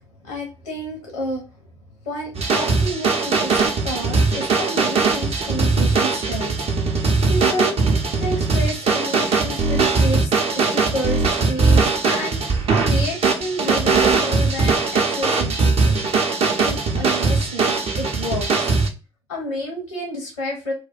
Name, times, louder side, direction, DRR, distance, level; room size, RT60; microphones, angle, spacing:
voice 1, 0.2-1.5 2.0-6.6 6.9-7.8 8.2-18.7 19.3-20.7, equal, 85° left, 1 dB, 0.7 m, -30 dB
sound 1, 2.3-18.9, right 4 dB, 45° right, 0.6 m, -20 dB
2.5 x 2.2 x 3.9 m, 0.31 s
figure-of-eight pair, 45°, 14 cm